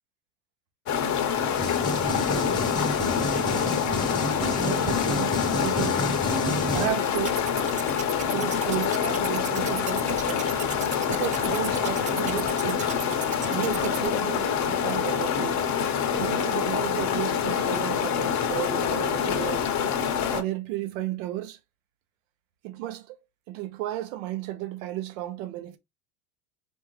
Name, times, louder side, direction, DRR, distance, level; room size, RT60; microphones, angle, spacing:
sound 1, 0.9-20.4, left 8 dB, 45° left, 0.8 m, -26 dB
voice 1, 1.4-4.1 4.6-6.0 6.7-7.5 8.3-10.5 11.1-12.9 13.5-15.6 16.1-19.7 20.3-21.6 22.6-23.1 23.5-25.8, right 14 dB, 80° right, 0.8 m, -34 dB
sound 2, 1.5-6.9, left 1 dB, 10° left, 0.8 m, -30 dB
sound 3, 7.1-14.1, right 7 dB, 20° right, 0.3 m, -38 dB
3.4 x 2.7 x 3.0 m
supercardioid pair, 95°, 39 cm